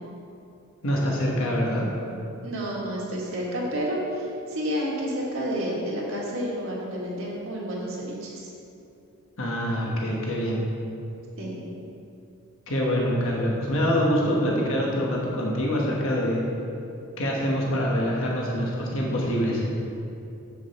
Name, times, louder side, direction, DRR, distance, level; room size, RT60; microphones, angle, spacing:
voice 1, 0.8-1.9 9.4-10.6 12.7-16.4 17.2-19.7, equal, 65° left, -3 dB, 1.3 m, -25 dB
voice 2, 2.4-8.5 11.4-11.6, equal, 65° right, -5 dB, 1.9 m, -30 dB
7.7 x 6.3 x 4.2 m, 2.7 s
head